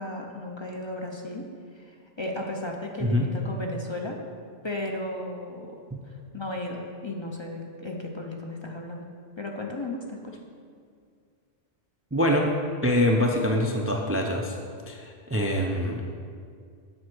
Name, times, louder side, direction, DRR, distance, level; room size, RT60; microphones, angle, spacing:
voice 1, 0.0-1.5 1.7-4.2 4.6-5.8 6.0-9.0 9.4-10.4, left 1 dB, 30° left, 0 dB, 0.7 m, -35 dB
voice 2, 12.1-12.5 12.8-14.5 14.9-16.1, left 1 dB, 15° right, 0 dB, 0.5 m, -24 dB
7.8 x 5.6 x 6.1 m, 2.2 s
omnidirectional pair, 1.1 m